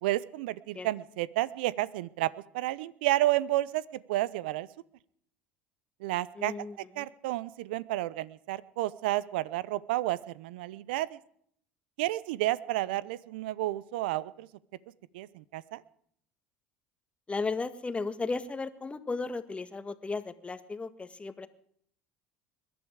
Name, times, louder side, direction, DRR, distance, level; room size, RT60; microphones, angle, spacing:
voice 1, 0.0-4.7 6.0-6.7 7.0-11.2 12.0-14.5 15.1-15.8, right 16 dB, 75° right, 19 dB, 0.8 m, -31 dB
voice 2, 6.4-7.1 17.3-21.5, left 3 dB, 20° left, 12 dB, 1.8 m, -35 dB
22.0 x 12.5 x 4.9 m, 0.63 s
hypercardioid pair, 70°, 6 cm